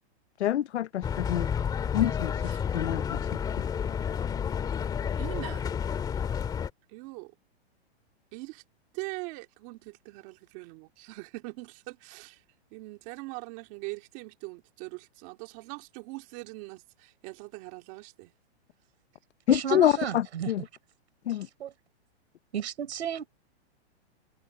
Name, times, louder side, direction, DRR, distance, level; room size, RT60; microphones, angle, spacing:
voice 1, 0.4-1.5 1.9-3.3 19.5-20.7 21.3-21.5, left 12 dB, 90° left, 0.9 m, -27 dB
sound 1, 1.0-6.7, left 7 dB, 10° left, 2.0 m, -30 dB
voice 2, 5.2-5.6 6.9-7.3 8.3-8.6 8.9-12.4 12.7-18.3, right 24 dB, 30° right, 2.3 m, -42 dB
voice 3, 19.5-20.5 21.6-21.7 22.5-23.3, right 9 dB, 75° right, 4.6 m, -33 dB
open air
hypercardioid pair, 165°, 33 cm